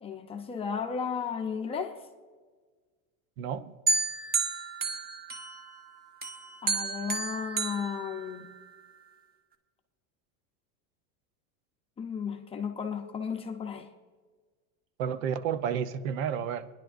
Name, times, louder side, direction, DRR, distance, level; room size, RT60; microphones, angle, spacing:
voice 1, 0.0-2.0 6.6-8.5 12.0-13.9, left 6 dB, 15° left, 0.6 m, -34 dB
voice 2, 3.4-3.7 15.0-16.7, right 8 dB, 70° right, 0.8 m, -31 dB
sound 1, 3.9-5.8 6.2-8.7, right 3 dB, 20° right, 1.0 m, -32 dB
29.5 x 10.5 x 2.6 m
supercardioid pair, 160°, 41 cm